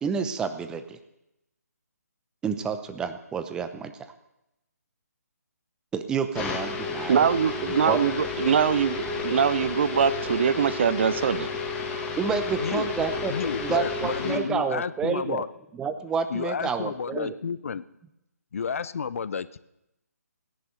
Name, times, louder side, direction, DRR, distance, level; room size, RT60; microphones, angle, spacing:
voice 1, 0.0-1.0 2.4-3.9 5.9-7.3 7.9-8.0 12.2-13.3 13.6-15.4 15.7-17.3, right 6 dB, 10° right, 10 dB, 0.8 m, -29 dB
sound 1, 6.3-14.4, left 4 dB, 10° left, 2.0 m, -31 dB
voice 2, 7.1-11.5, right 7 dB, 40° right, 16 dB, 0.6 m, -23 dB
voice 3, 13.3-15.5 16.3-17.8 18.5-19.6, left 6 dB, 55° left, 16 dB, 0.6 m, -31 dB
17.0 x 10.5 x 6.4 m, 0.88 s
figure-of-eight pair, 145°, 9 cm